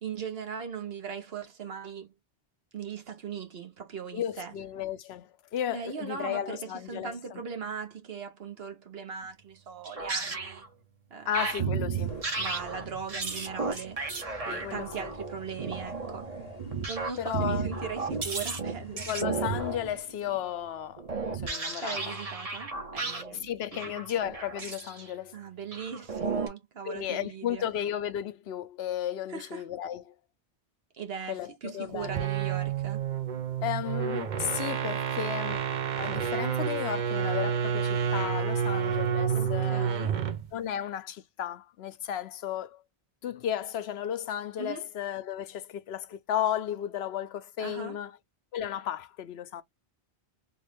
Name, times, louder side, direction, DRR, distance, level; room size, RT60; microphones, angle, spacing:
voice 1, 0.0-2.1 2.7-4.5 5.7-10.7 11.1-11.3 12.4-14.1 14.4-16.4 16.9-19.1 21.8-23.5 25.3-27.7 29.3-29.6 30.9-33.1 39.3-40.2 44.6-44.9 47.6-48.0, right 6 dB, 70° right, 1.2 m, -39 dB
voice 2, 4.1-7.4 11.3-12.2 14.5-15.1 17.2-17.7 19.1-21.0 21.4-22.2 23.3-25.4 26.9-30.1 31.3-32.3 33.6-35.7 36.0-39.9 40.5-42.8 43.2-48.2 48.5-49.6, left 10 dB, 80° left, 0.8 m, -34 dB
sound 1, 9.9-10.7 11.3-20.4 21.0-23.3 23.6-25.1 25.7-26.5, right 4 dB, 35° right, 0.9 m, -34 dB
sound 2, 11.9-20.0, left 8 dB, 45° left, 0.8 m, -48 dB
sound 3, 32.0-40.5, right 7 dB, 55° right, 0.7 m, -29 dB
3.6 x 2.4 x 3.3 m
omnidirectional pair, 1.1 m